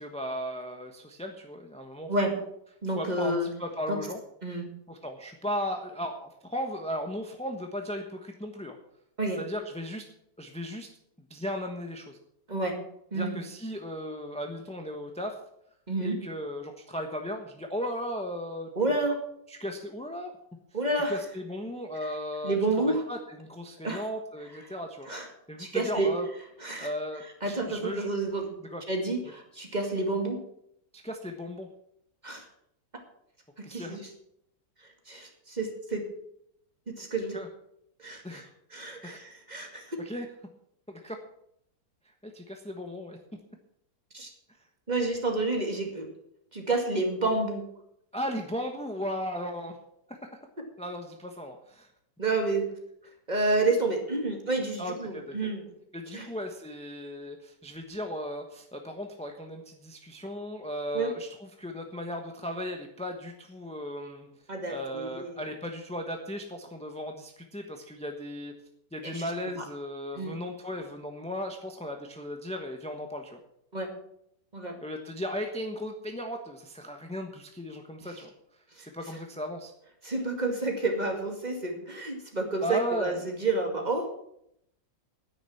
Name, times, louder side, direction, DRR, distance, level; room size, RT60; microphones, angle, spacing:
voice 1, 0.0-2.1 2.9-4.2 4.9-8.8 9.4-10.0 10.4-10.9 11.3-12.2 13.1-15.3 16.0-18.7 19.5-20.3 21.1-22.6 22.9-25.1 25.5-26.3 26.8-28.1 28.7-28.8 31.0-31.7 33.6-34.0 37.3-37.5 38.2-38.4 39.0-39.2 40.0-40.3 40.9-41.2 42.2-43.2 48.1-49.8 50.1-50.3 50.8-51.9 54.8-55.5 55.9-64.3 64.7-68.5 68.9-73.4 74.8-78.3 78.8-79.7 82.6-83.2, equal, 5° left, 3 dB, 0.9 m, -36 dB
voice 2, 2.8-3.5 3.9-4.0 4.4-4.7 9.2-9.4 12.5-12.8 13.1-13.4 15.9-16.1 18.8-19.2 20.7-21.2 22.4-23.0 23.8-24.0 25.1-25.3 25.6-26.1 26.6-26.9 27.4-28.5 28.9-30.4 32.2-32.5 33.6-34.1 35.1-36.0 36.9-37.4 38.0-38.4 38.7-40.0 44.1-44.3 44.9-46.1 46.5-47.6 52.2-52.7 53.3-55.6 56.1-56.3 60.9-61.1 64.5-65.4 69.0-69.2 70.1-70.4 73.7-73.9 74.5-74.8 78.8-78.9 80.0-84.2, right 2 dB, 25° right, 2 dB, 2.4 m, -29 dB
10.0 x 9.8 x 7.1 m, 0.74 s
omnidirectional pair, 1.8 m